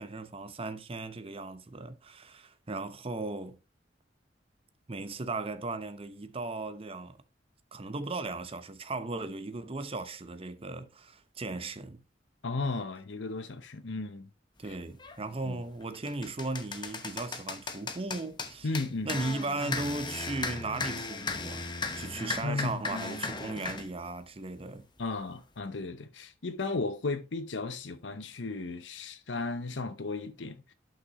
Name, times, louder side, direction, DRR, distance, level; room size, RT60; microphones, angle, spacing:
voice 1, 0.0-3.6 4.9-7.2 7.7-12.0 14.6-18.7 19.0-24.8, right 2 dB, 30° right, 0.8 m, -37 dB
voice 2, 12.4-14.3 15.4-15.6 18.6-19.2 22.4-23.3 25.0-30.7, left 3 dB, 85° left, 0.9 m, -35 dB
sound 1, 15.0-15.2 15.7-23.9, left 4 dB, 25° left, 0.9 m, -36 dB
11.5 x 5.9 x 3.0 m
head